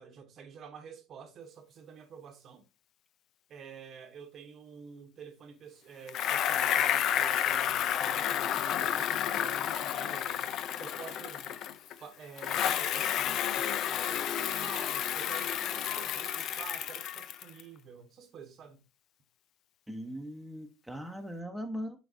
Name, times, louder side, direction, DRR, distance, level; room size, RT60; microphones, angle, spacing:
voice 1, 0.0-2.7 3.5-10.5 10.8-11.6 12.0-14.3 14.6-18.8, right 6 dB, 45° right, 1.1 m, -49 dB
Bicycle, 6.1-11.9 12.4-17.6, left 10 dB, 55° left, 0.5 m, -31 dB
voice 2, 19.9-22.0, equal, ahead, 1.1 m, -39 dB
9.8 x 4.0 x 2.7 m
supercardioid pair, 105°, 0 cm